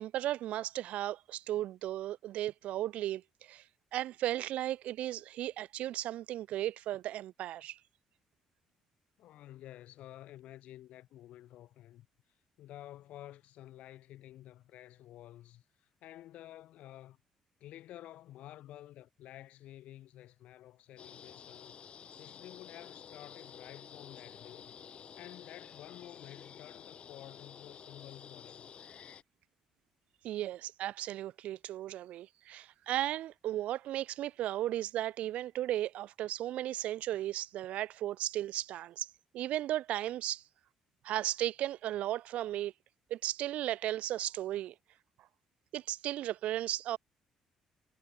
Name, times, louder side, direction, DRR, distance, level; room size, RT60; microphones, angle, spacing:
voice 1, 0.0-3.6 3.9-7.8 30.2-39.1 39.3-40.4 41.0-42.7 43.1-44.7 45.7-47.0, right 13 dB, 65° right, 0.7 m, -35 dB
voice 2, 9.2-12.1 12.6-17.2 17.6-24.7 25.2-28.7, left 13 dB, 65° left, 4.0 m, -51 dB
sound 1, 21.0-29.2, left 8 dB, 50° left, 0.8 m, -51 dB
hypercardioid pair, 45°, 2 cm